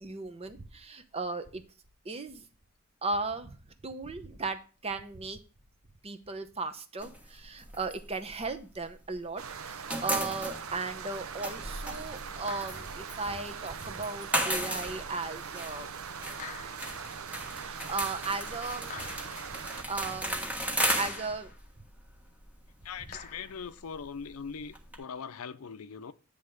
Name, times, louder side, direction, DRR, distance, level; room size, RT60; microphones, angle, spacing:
voice 1, 0.0-1.6 2.0-2.5 3.0-3.6 3.8-5.4 6.0-15.9 17.5-19.1 19.5-21.5, right 3 dB, 30° right, 0.8 m, -36 dB
sound 1, 7.0-9.2 9.5-25.0, equal, 5° right, 1.4 m, -36 dB
sound 2, 9.4-19.8, right 6 dB, 70° right, 0.6 m, -41 dB
sound 3, 12.5-13.0 14.6-14.7 16.4-17.1 18.9-19.6 21.0-21.6 23.1-23.7, left 6 dB, 35° left, 0.7 m, -46 dB
voice 2, 22.8-26.1, left 6 dB, 80° left, 0.5 m, -41 dB
9.5 x 3.5 x 6.4 m
head